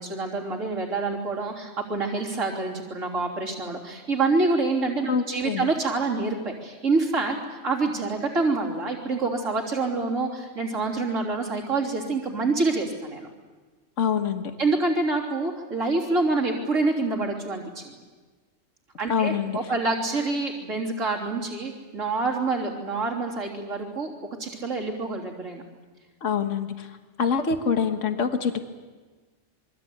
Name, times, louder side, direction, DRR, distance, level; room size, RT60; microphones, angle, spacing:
voice 1, 0.0-13.3 14.6-17.9 19.0-24.1 24.4-25.6, right 3 dB, 80° right, -2 dB, 3.7 m, -27 dB
voice 2, 5.1-5.7 14.0-14.5 19.1-19.6 26.2-26.9 27.2-28.6, left 6 dB, 75° left, 6 dB, 1.7 m, -25 dB
27.5 x 23.5 x 8.6 m, 1.3 s
omnidirectional pair, 1.3 m